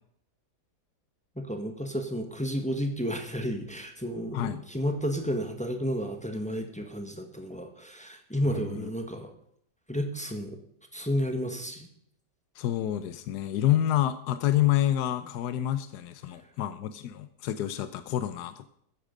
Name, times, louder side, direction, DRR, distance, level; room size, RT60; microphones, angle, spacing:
voice 1, 1.4-9.3 9.9-10.6 10.9-11.9, equal, 5° left, 5 dB, 1.3 m, -32 dB
voice 2, 4.3-4.6 8.5-8.9 12.6-18.7, left 12 dB, 80° left, 12 dB, 1.3 m, -28 dB
14.0 x 10.0 x 5.2 m, 0.69 s
omnidirectional pair, 1.7 m